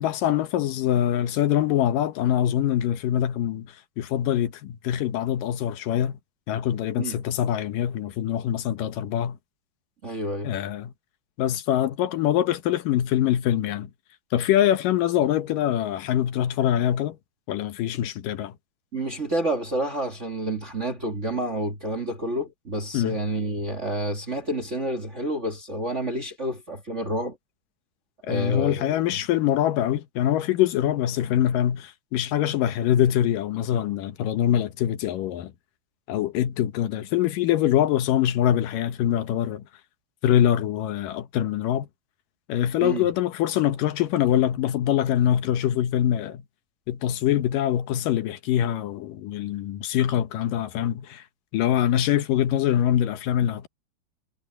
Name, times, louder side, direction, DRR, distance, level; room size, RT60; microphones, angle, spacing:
voice 1, 0.0-6.2 6.5-9.4 10.4-10.9 11.4-13.9 14.3-17.2 17.5-18.6 22.9-23.2 28.3-35.5 36.1-39.7 40.2-41.9 42.5-46.4 46.9-51.2 51.5-53.7, left 11 dB, 85° left, 2.8 m, -24 dB
voice 2, 10.0-10.5 18.9-27.4 28.3-29.0 42.8-43.1, right 1 dB, 30° right, 1.5 m, -29 dB
omnidirectional pair, 3.8 m